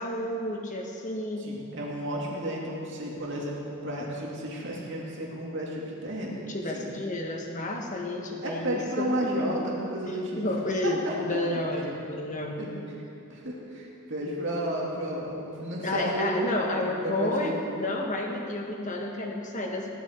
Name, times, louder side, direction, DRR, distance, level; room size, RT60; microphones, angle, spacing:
voice 1, 0.0-1.5 6.5-9.5 10.1-12.7 15.8-19.9, left 1 dB, 35° left, 1 dB, 1.5 m, -31 dB
voice 2, 1.4-6.4 6.7-6.9 8.4-10.4 10.8-11.9 12.6-12.7 13.3-17.5, right 1 dB, 55° right, -3 dB, 2.5 m, -32 dB
16.0 x 11.0 x 4.6 m, 2.6 s
head